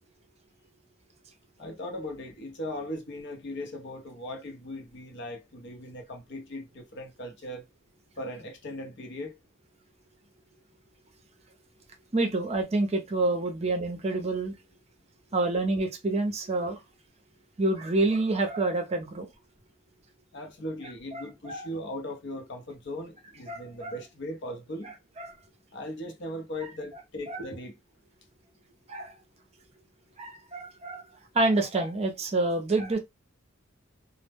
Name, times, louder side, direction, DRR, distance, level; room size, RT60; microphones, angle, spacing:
voice 1, 1.6-7.6 8.2-9.4 20.3-24.9 25.7-27.7, left 1 dB, 60° left, 0.7 m, -38 dB
voice 2, 12.1-14.5 15.3-16.8 17.6-19.3 21.1-21.7 23.5-24.0 24.8-25.3 27.3-27.5 28.9-29.1 30.2-31.0 31.3-33.0, right 2 dB, 30° right, 0.5 m, -28 dB
2.1 x 2.0 x 3.3 m
head